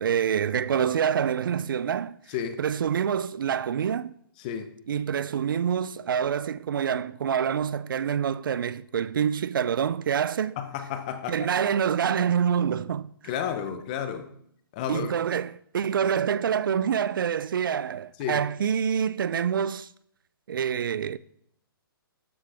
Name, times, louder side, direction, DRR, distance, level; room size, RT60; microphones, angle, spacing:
voice 1, 0.0-2.2 2.6-4.1 4.9-10.6 11.3-13.1 14.9-19.9 20.5-21.2, right 8 dB, 60° right, 0.4 m, -26 dB
voice 2, 4.4-4.7 10.6-11.4 13.2-14.3 14.7-15.1 18.2-18.4, left 8 dB, 20° left, 0.6 m, -32 dB
12.5 x 7.5 x 3.4 m
hypercardioid pair, 170°, 13 cm